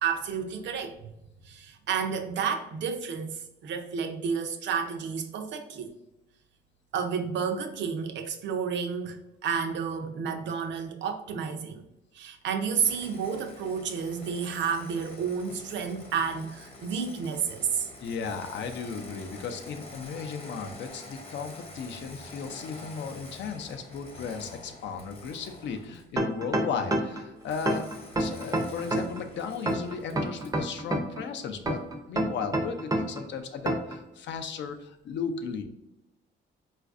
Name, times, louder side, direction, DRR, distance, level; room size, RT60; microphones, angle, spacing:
voice 1, 0.0-1.1 1.4-5.9 6.9-11.8 12.1-17.9, right 6 dB, 65° right, 6 dB, 0.5 m, -31 dB
Engine starting, 12.8-26.2 27.4-30.6, left 2 dB, 30° left, 0.9 m, -47 dB
voice 2, 18.0-27.9 28.2-31.8 32.1-35.6, left 6 dB, 65° left, 6 dB, 0.5 m, -35 dB
sound 1, 26.2-27.2 27.7-29.2 29.7-31.2 31.7-33.2 33.7-34.0, right 1 dB, 20° right, 0.5 m, -27 dB
4.0 x 2.4 x 2.4 m, 0.91 s
cardioid pair, 90°, 20 cm